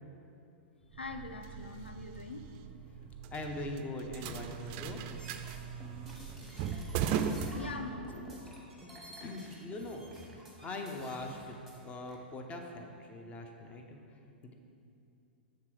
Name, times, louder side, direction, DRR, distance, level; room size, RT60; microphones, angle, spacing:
voice 1, 0.9-2.4 7.5-8.6, left 3 dB, 85° left, 6 dB, 0.4 m, -43 dB
sound 1, 0.9-8.3, right 7 dB, 40° right, 0.4 m, -38 dB
voice 2, 3.0-5.0 8.9-10.4 10.6-11.6 11.8-14.0 14.2-14.5, left 2 dB, 25° left, 3 dB, 0.8 m, -42 dB
sound 2, 5.1-7.8 8.0-11.8 12.1-12.2, right 1 dB, 5° left, 1.5 m, -51 dB
7.4 x 3.8 x 6.1 m, 2.6 s
figure-of-eight pair, 100°, 6 cm